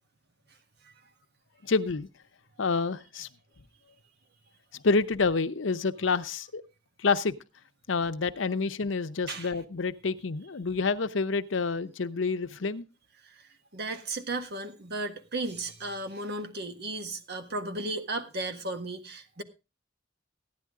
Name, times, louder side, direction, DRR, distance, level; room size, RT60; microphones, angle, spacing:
voice 1, 1.6-2.1 2.6-3.3 4.7-6.6 7.0-7.4 7.9-12.9, left 4 dB, 80° left, 12 dB, 0.7 m, -28 dB
voice 2, 13.7-19.4, right 2 dB, 60° right, 7 dB, 1.6 m, -35 dB
14.5 x 10.5 x 3.7 m, 0.30 s
head